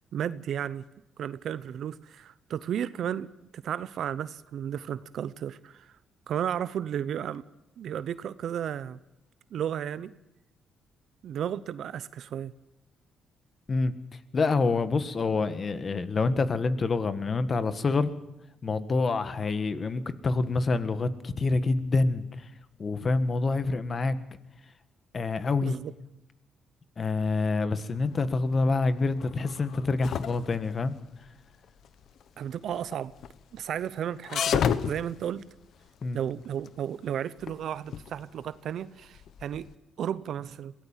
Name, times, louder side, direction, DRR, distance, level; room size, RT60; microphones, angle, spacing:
voice 1, 0.1-0.8 1.2-5.9 6.3-7.4 7.8-9.0 9.5-10.1 11.2-12.5 25.6-25.9 32.4-33.1 33.5-35.4 36.1-39.7 40.0-40.7, right 9 dB, 70° right, 0.7 m, -33 dB
voice 2, 14.3-18.1 18.6-22.2 22.8-24.2 25.1-25.7 27.0-30.9 36.0-36.2, left 3 dB, 40° left, 1.6 m, -27 dB
sound 1, 27.9-39.7, left 8 dB, 65° left, 1.0 m, -34 dB
22.5 x 17.0 x 7.4 m
cardioid pair, 90°, 0 cm